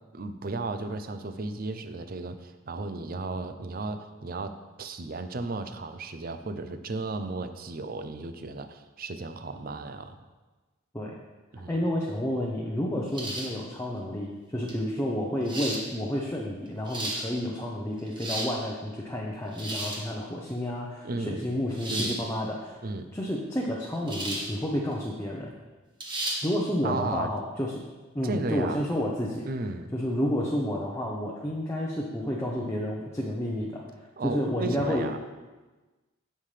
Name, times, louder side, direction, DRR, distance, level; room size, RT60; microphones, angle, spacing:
voice 1, 0.1-10.2 11.5-11.8 21.0-21.5 21.9-22.2 22.8-23.1 26.8-27.3 28.2-28.8 29.4-29.9 34.2-35.2, right 3 dB, 45° right, 9 dB, 0.6 m, -34 dB
voice 2, 11.7-22.8 23.1-25.5 26.4-27.8 28.1-29.5 29.9-33.8 34.2-35.1, left 1 dB, 15° left, -2 dB, 0.8 m, -30 dB
sound 1, 13.1-13.6 14.7-14.8 15.4-15.8 16.7-17.2 18.0-18.5 19.5-20.0 21.8-22.2 24.1-24.5 24.9-25.0 26.0-26.4, right 1 dB, 20° right, 1.3 m, -33 dB
16.0 x 5.7 x 3.3 m, 1.2 s
head